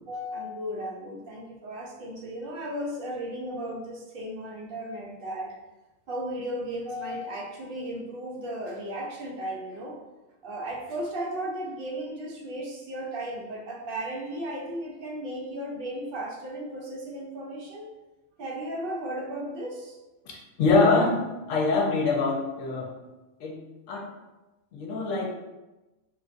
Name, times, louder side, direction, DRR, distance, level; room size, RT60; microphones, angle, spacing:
voice 1, 0.1-5.6 6.1-10.0 10.4-17.9 18.4-20.0, right 1 dB, 60° right, -2 dB, 0.6 m, -35 dB
voice 2, 20.2-21.2 21.5-22.9 23.4-23.6 23.9-24.1 24.7-25.3, left 3 dB, 70° left, -1 dB, 1.0 m, -24 dB
3.1 x 2.6 x 2.5 m, 1.1 s
omnidirectional pair, 1.5 m